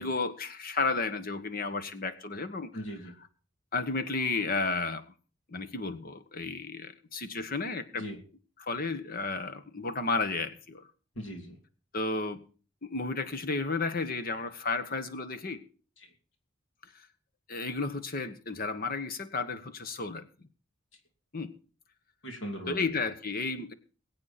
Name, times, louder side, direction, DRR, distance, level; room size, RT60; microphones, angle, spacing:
voice 1, 0.0-2.7 3.7-5.0 5.5-8.0 8.6-10.9 11.9-12.4 12.8-15.6 17.5-20.3 21.3-21.5 22.7-23.7, left 3 dB, 50° left, 10 dB, 1.4 m, -32 dB
voice 2, 2.7-3.1 7.9-8.2 11.1-11.6 16.0-16.1 22.2-23.0, equal, 70° left, 3 dB, 3.0 m, -39 dB
21.5 x 8.6 x 4.3 m, 0.38 s
head